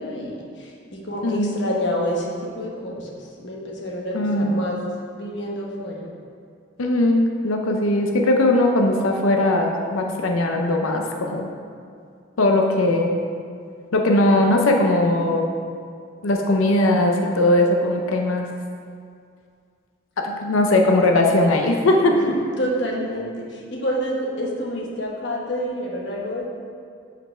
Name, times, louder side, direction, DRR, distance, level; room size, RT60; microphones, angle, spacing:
voice 1, 0.0-3.1 3.4-4.8 5.2-6.1 22.1-26.5, equal, 60° left, -2 dB, 1.1 m, -28 dB
voice 2, 1.2-1.6 4.1-4.7 6.8-11.5 12.4-13.1 13.9-15.5 16.2-18.5 20.2-22.1, left 1 dB, 90° left, 2 dB, 0.6 m, -19 dB
5.4 x 5.1 x 5.5 m, 2.2 s
head